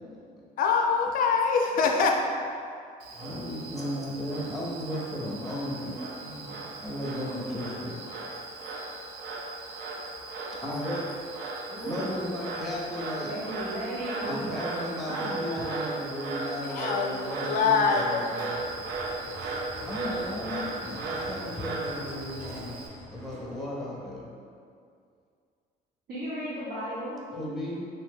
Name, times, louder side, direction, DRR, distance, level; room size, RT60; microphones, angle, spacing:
voice 1, 0.6-2.2 16.7-17.1 17.4-18.3, left 5 dB, 55° left, 2 dB, 0.4 m, -24 dB
Frog, 3.0-22.9, right 3 dB, 70° right, 0.5 m, -37 dB
voice 2, 3.1-8.0 10.6-11.1 11.8-13.3 14.2-18.6 19.8-24.3 27.3-27.9, equal, ahead, -5 dB, 0.6 m, -35 dB
voice 3, 11.6-12.3 13.2-15.8 26.1-27.2, equal, 90° right, -12 dB, 0.9 m, -35 dB
sound 1, 18.3-23.7, equal, 45° right, 0.9 m, -45 dB
2.9 x 2.0 x 3.5 m, 2.3 s
cardioid pair, 110°, 17 cm